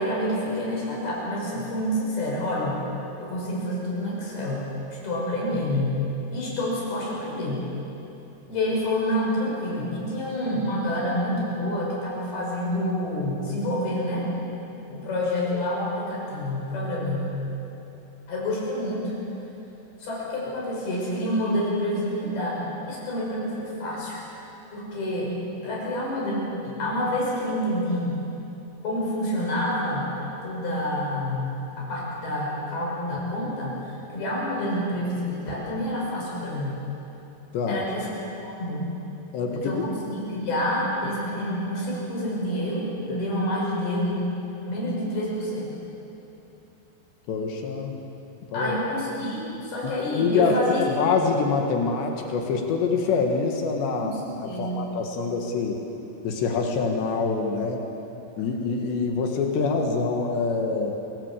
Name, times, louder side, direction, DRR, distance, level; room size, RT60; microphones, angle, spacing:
voice 1, 0.0-2.8 3.2-4.7 5.0-6.0 6.3-7.6 8.5-14.3 14.9-17.4 18.3-19.1 20.0-24.2 24.7-25.3 25.6-28.1 28.8-30.1 30.4-36.8 37.7-38.1 38.4-38.8 39.5-44.3 44.6-45.7 48.5-50.9 53.9-54.1 54.4-54.9, left 1 dB, 55° left, -4 dB, 7.5 m, -28 dB
voice 2, 39.3-39.8 47.3-47.9 48.5-48.7 49.8-54.1 54.4-55.8 56.2-57.9 58.4-60.9, left 4 dB, 75° left, 3 dB, 3.7 m, -25 dB
26.5 x 18.5 x 8.4 m, 2.9 s
omnidirectional pair, 5.2 m